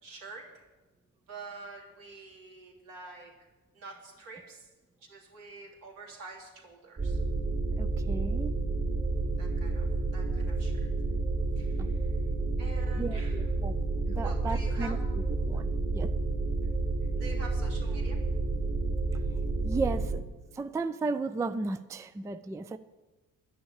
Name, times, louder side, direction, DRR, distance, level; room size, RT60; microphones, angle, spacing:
voice 1, 0.0-0.6 1.3-3.3 3.7-4.7 5.0-7.2 9.4-10.9 11.6-12.1 12.6-13.5 14.1-14.9 17.2-18.2, right 3 dB, 75° right, -1 dB, 3.1 m, -47 dB
sound 1, 7.0-20.2, right 3 dB, 40° right, 2.8 m, -30 dB
voice 2, 7.8-8.5 13.0-13.7 14.2-15.0 15.5-15.7 15.9-16.1 19.6-20.2 20.5-22.8, right 3 dB, 10° right, 12 dB, 0.3 m, -34 dB
11.0 x 10.0 x 7.2 m, 1.2 s
cardioid pair, 125°, 34 cm